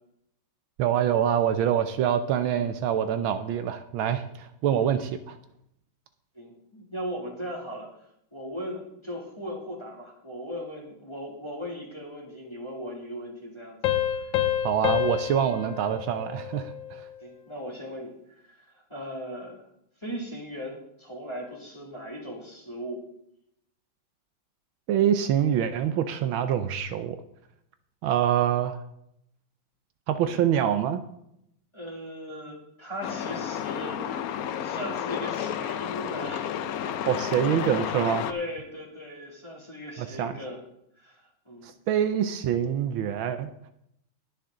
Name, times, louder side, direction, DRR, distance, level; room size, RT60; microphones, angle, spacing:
voice 1, 0.8-5.4 14.6-17.1 24.9-27.2 28.0-28.8 30.1-31.0 37.1-38.3 40.0-40.3 41.6-43.5, right 9 dB, 75° right, 10 dB, 1.4 m, -25 dB
voice 2, 6.3-7.9 8.3-13.8 14.1-14.4 17.2-19.7 20.0-23.0 30.2-30.4 31.7-36.5 37.2-37.8 38.2-40.6 41.0-41.7, equal, 15° left, -2 dB, 2.4 m, -38 dB
Piano, 13.8-17.1, left 11 dB, 70° left, 1.6 m, -28 dB
Truck, 33.0-38.3, left 9 dB, 85° left, 0.8 m, -31 dB
20.0 x 6.9 x 3.7 m, 0.76 s
omnidirectional pair, 2.3 m